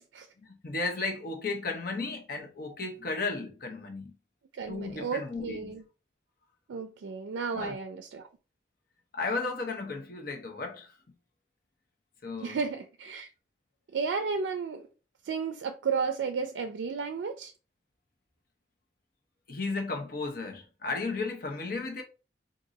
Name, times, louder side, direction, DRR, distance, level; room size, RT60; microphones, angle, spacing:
voice 1, 0.4-4.1 4.7-5.6 7.5-7.8 9.1-10.9 12.2-12.6 19.5-22.0, left 3 dB, 55° left, 0.8 m, -34 dB
voice 2, 4.5-5.8 6.7-8.3 12.4-13.3 13.9-14.9 15.2-17.5, right 5 dB, 85° right, 0.4 m, -33 dB
2.6 x 2.6 x 3.9 m
head